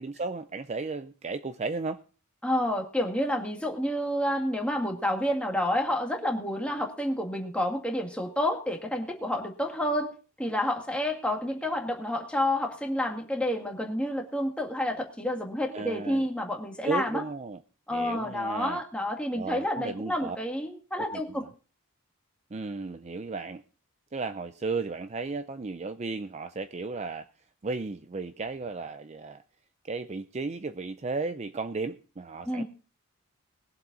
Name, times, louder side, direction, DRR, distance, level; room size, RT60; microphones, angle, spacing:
voice 1, 0.0-2.0 15.7-16.2 16.8-17.6 17.9-18.8 19.3-20.4 21.0-21.5 22.5-23.6 24.1-27.3 27.6-29.4 29.8-32.6, right 3 dB, 30° right, 10 dB, 0.5 m, -34 dB
voice 2, 2.4-10.1 10.4-17.2 17.9-21.5 32.5-32.6, left 1 dB, 5° left, 1 dB, 1.9 m, -29 dB
20.5 x 7.7 x 3.9 m, 0.38 s
head